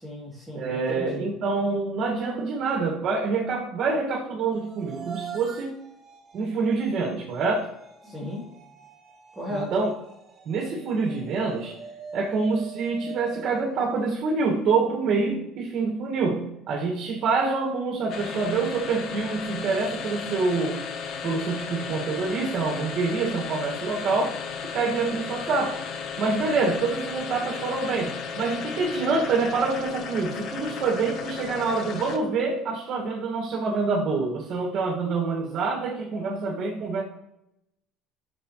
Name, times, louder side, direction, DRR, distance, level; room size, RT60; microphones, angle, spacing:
voice 1, 0.0-1.2 8.0-8.4 9.4-9.7, left 1 dB, ahead, -8 dB, 3.1 m, -34 dB
voice 2, 0.5-5.8 6.3-7.7 9.5-9.9 10.5-11.8 12.1-20.8 21.2-24.4 24.7-25.8 26.2-37.0, right 4 dB, 50° right, -2 dB, 2.0 m, -26 dB
sound 1, 4.5-14.7, right 6 dB, 30° right, 3.4 m, -44 dB
sound 2, 18.1-32.4, left 6 dB, 55° left, 1.1 m, -35 dB
13.0 x 6.8 x 3.2 m, 0.85 s
cardioid pair, 120°, 0 cm